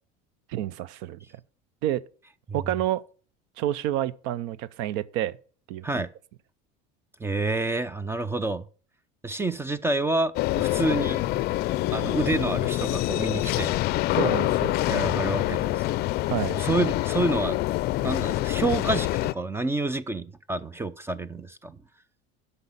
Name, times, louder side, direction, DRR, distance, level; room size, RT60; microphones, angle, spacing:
voice 1, 0.5-1.2 1.8-2.0 2.5-3.0 3.6-5.4 5.7-6.0 14.1-14.8 16.3-16.6, right 12 dB, 70° right, 0.6 m, -29 dB
voice 2, 7.2-8.6 9.2-11.2 11.9-13.7 14.9-15.8 16.6-17.6 18.0-19.1 19.3-21.8, right 2 dB, 10° right, 0.4 m, -28 dB
sound 1, 10.4-19.3, left 17 dB, 50° left, 0.5 m, -26 dB
8.0 x 5.5 x 7.2 m
cardioid pair, 130°, 21 cm